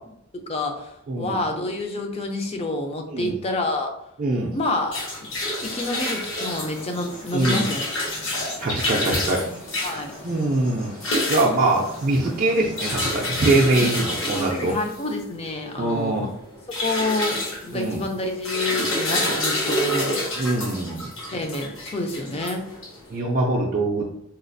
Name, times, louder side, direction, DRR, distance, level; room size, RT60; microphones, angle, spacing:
voice 1, 0.3-3.9 4.5-5.3 5.6-7.8 9.8-10.1 13.7-13.9 14.2-16.3 16.8-20.2 21.3-22.7, left 2 dB, 30° left, 3 dB, 0.4 m, -28 dB
voice 2, 1.1-1.4 3.1-3.3 4.2-4.5 7.3-7.7 8.6-9.5 9.7-10.9 11.3-14.8 15.8-16.2 17.7-18.0 20.4-21.1 23.1-24.1, right 2 dB, 40° right, -2 dB, 0.4 m, -23 dB
sound 1, 4.6-23.1, left 1 dB, 60° left, 1.0 m, -29 dB
sound 2, 6.6-14.7, left 1 dB, 85° left, 1.4 m, -38 dB
4.1 x 2.3 x 2.6 m, 0.75 s
head